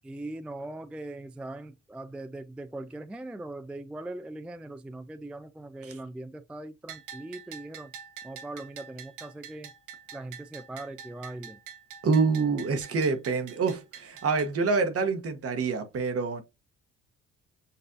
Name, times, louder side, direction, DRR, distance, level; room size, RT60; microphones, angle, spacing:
voice 1, 0.0-7.9 8.2-9.7 10.1-11.6, right 2 dB, 5° right, 0.3 m, -40 dB
Bell, 6.9-14.5, right 8 dB, 85° right, 0.9 m, -46 dB
voice 2, 12.0-16.4, right 4 dB, 50° right, 1.0 m, -26 dB
6.7 x 2.4 x 2.6 m
cardioid pair, 90°, 30 cm